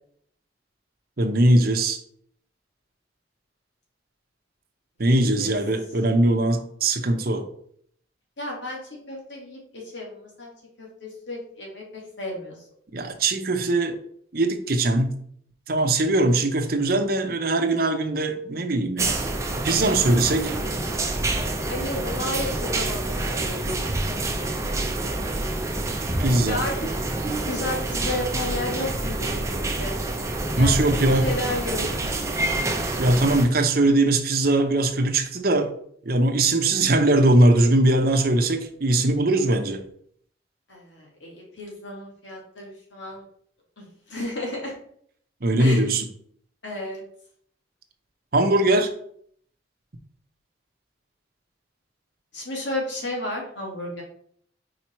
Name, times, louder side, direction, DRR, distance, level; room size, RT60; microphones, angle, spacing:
voice 1, 1.2-2.0 5.0-7.5 12.9-14.0 14.3-15.1 15.7-19.2 19.6-20.6 26.2-26.6 30.6-31.3 33.0-35.7 36.0-39.8 45.4-46.0 48.3-48.9, right 2 dB, 50° right, 5 dB, 0.8 m, -21 dB
voice 2, 8.4-8.8 9.1-10.5 10.8-12.7 21.6-23.7 26.5-26.7 27.5-30.0 30.5-30.7 31.1-31.9 40.7-43.2 43.8-44.7 45.6-45.9 46.6-47.0 52.3-54.0, left 1 dB, 75° left, -2 dB, 2.2 m, -32 dB
sound 1, 19.0-33.5, right 2 dB, 15° right, 0.7 m, -27 dB
4.8 x 4.6 x 4.4 m, 0.64 s
head